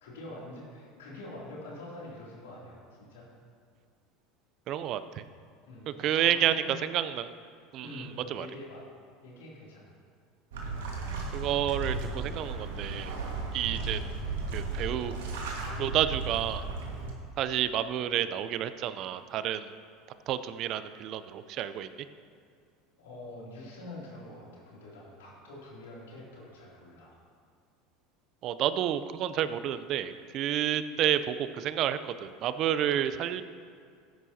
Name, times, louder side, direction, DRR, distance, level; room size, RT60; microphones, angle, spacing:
voice 1, 0.0-2.8 3.1-3.3 5.6-6.7 7.8-8.8 9.2-9.9 23.0-27.1, left 1 dB, 85° left, -4 dB, 2.8 m, -45 dB
voice 2, 4.7-5.2 5.9-7.3 7.7-8.5 11.3-13.1 13.5-14.0 14.5-15.1 15.8-16.7 17.4-19.7 20.3-21.9 28.4-33.4, right 11 dB, 55° right, 12 dB, 0.5 m, -30 dB
sound 1, 10.5-17.1, right 3 dB, 80° right, 1.7 m, -35 dB
13.5 x 10.0 x 2.8 m, 2.2 s
hypercardioid pair, 85°, 0 cm